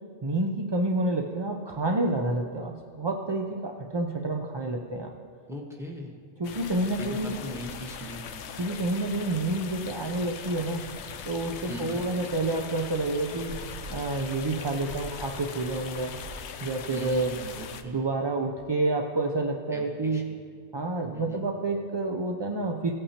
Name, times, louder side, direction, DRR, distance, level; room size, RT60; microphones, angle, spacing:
voice 1, 0.2-5.1 6.4-7.4 8.6-10.8 11.3-13.6 13.9-16.1 16.6-17.3 17.8-20.2 20.7-22.9, right 2 dB, 40° right, 0 dB, 0.4 m, -29 dB
voice 2, 5.5-6.1 7.0-8.5 11.7-12.0 16.9-18.1 19.7-20.4 21.1-21.4, equal, 5° right, 0 dB, 1.1 m, -39 dB
sound 1, 6.4-17.8, left 7 dB, 90° left, 0.9 m, -40 dB
sound 2, 10.1-16.4, right 2 dB, 75° right, 1.2 m, -47 dB
16.0 x 8.7 x 2.8 m, 2.2 s
omnidirectional pair, 1.1 m